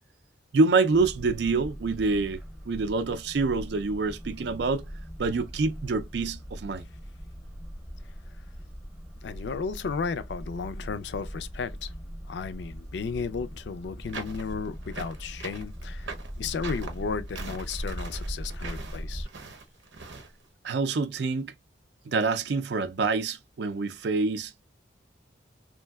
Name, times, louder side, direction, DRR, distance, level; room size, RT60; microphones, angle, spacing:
voice 1, 0.5-2.4 2.7-4.9 5.2-6.9 20.6-21.5 22.1-24.6, right 3 dB, 65° right, 0.4 m, -26 dB
sound 1, 0.9-19.3, equal, 5° right, 0.6 m, -40 dB
voice 2, 9.2-11.9 12.3-19.3, left 5 dB, 70° left, 0.4 m, -34 dB
sound 2, 14.1-20.3, right 4 dB, 85° right, 0.8 m, -42 dB
3.2 x 2.6 x 2.2 m
head